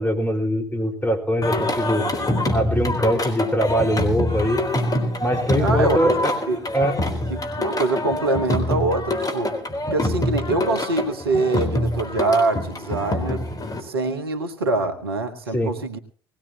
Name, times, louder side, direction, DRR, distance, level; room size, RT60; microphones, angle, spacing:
voice 1, 0.0-2.0 2.5-4.6 5.2-6.3 6.7-6.9 15.5-15.7, equal, 10° left, 3 dB, 4.7 m, -22 dB
Singing, 1.4-13.8, left 1 dB, 30° left, 3.9 m, -25 dB
voice 2, 5.5-6.2 6.5-6.7 7.3-9.5 9.9-13.4 13.8-16.0, right 2 dB, 80° right, 8 dB, 1.4 m, -24 dB
20.0 x 18.5 x 3.0 m, 0.40 s
figure-of-eight pair, 55°, 13 cm